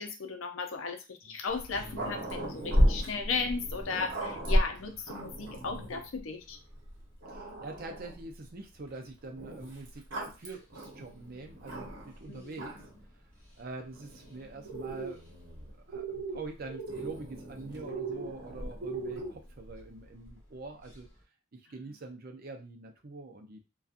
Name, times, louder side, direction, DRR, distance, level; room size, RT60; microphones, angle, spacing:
voice 1, 0.0-6.6 12.3-12.5, left 4 dB, 80° left, 5 dB, 0.5 m, -36 dB
Growling, 1.5-6.1 6.8-6.9 7.2-8.3 9.4-12.2 12.5-13.0 13.9-15.7 16.9-19.4, equal, 65° right, 0.9 m, -34 dB
sound 1, 1.7-21.2, equal, 10° left, 0.9 m, -54 dB
voice 2, 7.3-12.8 13.0-13.1 13.6-15.3 15.7-21.1 21.5-23.6, right 3 dB, 50° right, 4 dB, 0.5 m, -45 dB
sound 2, 14.6-15.1 15.9-16.4 16.6-17.1 17.8-18.3 18.8-19.3, right 4 dB, 90° right, 0.6 m, -37 dB
2.6 x 2.3 x 2.4 m, 0.28 s
head